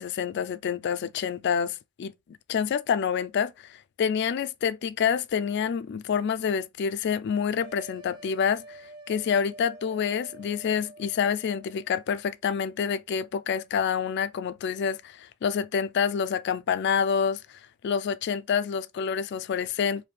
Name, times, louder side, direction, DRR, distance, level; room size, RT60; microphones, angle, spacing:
voice 1, 0.0-2.1 2.5-8.8 9.1-17.4 17.8-20.1, left 7 dB, 55° left, 0.3 m, -27 dB
sound 1, 7.5-11.9, right 1 dB, 20° right, 1.0 m, -48 dB
3.4 x 2.7 x 3.2 m
head